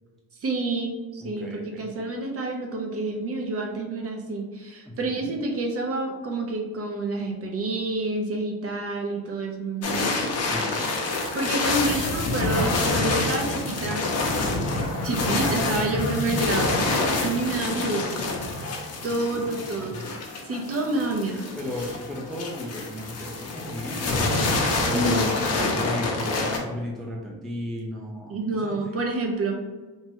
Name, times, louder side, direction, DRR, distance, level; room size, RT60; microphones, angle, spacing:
voice 1, 0.4-10.1 11.3-14.1 15.0-16.9 17.2-18.4 19.0-20.2 20.4-21.5 24.9-25.3 28.3-29.5, right 2 dB, 40° right, 1 dB, 0.6 m, -28 dB
voice 2, 1.2-1.9 4.9-5.3 10.4-10.9 19.1-19.2 19.5-20.1 21.6-24.4 24.8-29.0, left 1 dB, ahead, -3 dB, 0.4 m, -35 dB
sound 1, 9.8-26.6, left 2 dB, 40° left, 0.7 m, -27 dB
3.0 x 2.2 x 2.8 m, 1.3 s
cardioid pair, 85°, 38 cm